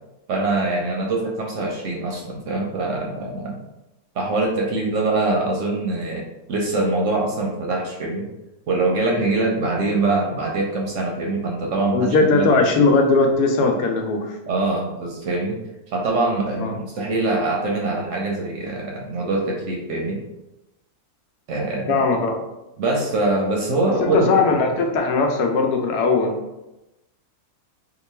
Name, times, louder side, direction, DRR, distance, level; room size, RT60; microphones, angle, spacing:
voice 1, 0.3-3.6 4.1-8.3 8.7-12.5 14.5-15.6 15.9-20.2 21.5-22.0 22.8-24.4, right 2 dB, 65° right, -1 dB, 0.8 m, -23 dB
voice 2, 11.9-14.3 16.6-16.7 21.9-22.4 24.0-26.3, left 3 dB, 85° left, 3 dB, 1.2 m, -19 dB
2.9 x 2.2 x 4.2 m, 0.95 s
omnidirectional pair, 1.6 m